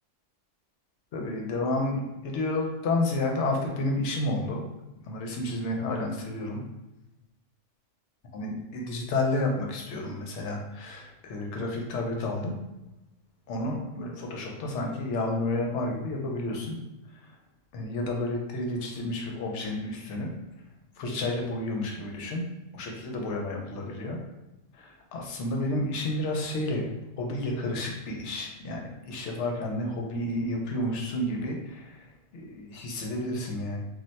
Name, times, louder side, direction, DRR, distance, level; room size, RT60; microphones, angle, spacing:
voice 1, 1.1-4.6 5.0-6.6 8.3-12.5 13.5-16.8 17.1-17.3 17.7-20.3 21.0-22.4 22.7-24.2 24.7-26.9 27.2-33.8, left 2 dB, 75° left, 0 dB, 0.9 m, -31 dB
2.4 x 2.2 x 3.9 m, 0.98 s
omnidirectional pair, 1.2 m